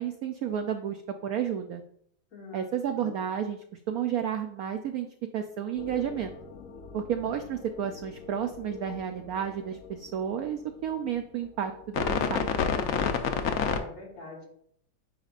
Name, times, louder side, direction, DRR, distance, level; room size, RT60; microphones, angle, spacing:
voice 1, 0.0-1.8 2.5-3.6 3.9-5.1 5.3-6.3 6.9-12.5, right 9 dB, 80° right, 6 dB, 0.8 m, -31 dB
voice 2, 2.3-2.7 3.0-3.2 13.3-14.5, left 4 dB, 50° left, -1 dB, 2.1 m, -44 dB
sound 1, 5.8-10.0 11.9-13.8, left 6 dB, 70° left, 0.8 m, -31 dB
8.9 x 5.1 x 2.4 m, 0.67 s
omnidirectional pair, 2.1 m